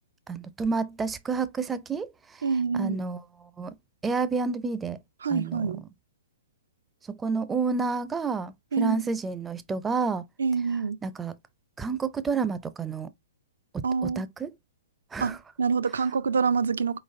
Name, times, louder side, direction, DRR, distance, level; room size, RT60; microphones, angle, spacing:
voice 1, 0.3-2.4 2.7-3.7 4.0-5.0 5.3-5.9 7.1-10.2 11.0-11.3 11.8-13.1 14.0-14.5 15.1-15.4, right 4 dB, 10° right, 0.4 m, -30 dB
voice 2, 2.4-3.0 5.2-5.8 8.7-9.0 10.4-11.0 13.8-14.2 15.2-17.0, right 5 dB, 65° right, 0.4 m, -26 dB
4.7 x 4.0 x 2.5 m
figure-of-eight pair, 115°, 0 cm